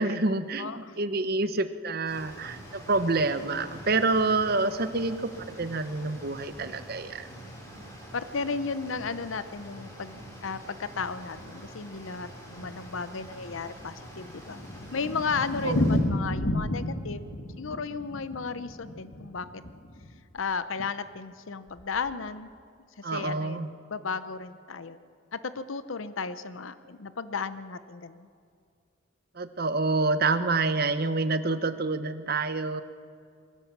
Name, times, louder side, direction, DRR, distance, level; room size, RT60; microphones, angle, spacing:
voice 1, 0.0-5.3 5.6-7.3 15.6-16.0 23.0-23.7 29.4-32.8, right 3 dB, 50° right, 11 dB, 0.9 m, -27 dB
voice 2, 0.6-1.0 8.1-14.6 14.9-17.3 17.6-19.6 20.3-22.5 23.0-25.0 25.3-28.3, left 5 dB, 80° left, 13 dB, 0.7 m, -34 dB
sound 1, 2.0-16.0, equal, 20° left, 6.6 m, -46 dB
Thunder, 13.8-20.1 20.4-20.5 20.8-20.9 21.1-21.2 21.8-22.1, left 1 dB, 60° left, 1.6 m, -31 dB
22.5 x 16.0 x 7.2 m, 2.3 s
head